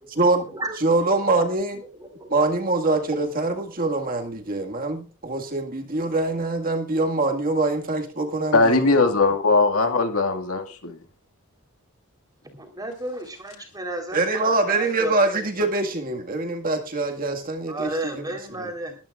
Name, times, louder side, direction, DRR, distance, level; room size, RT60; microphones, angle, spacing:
voice 1, 0.1-0.5 0.8-1.8 2.3-9.0 14.1-18.7, right 2 dB, 40° right, 1.9 m, -24 dB
voice 2, 2.0-2.4 12.5-15.5 17.7-19.0, right 2 dB, 15° right, 3.9 m, -33 dB
voice 3, 8.5-11.0, left 3 dB, 75° left, 2.0 m, -20 dB
21.5 x 12.5 x 2.5 m
head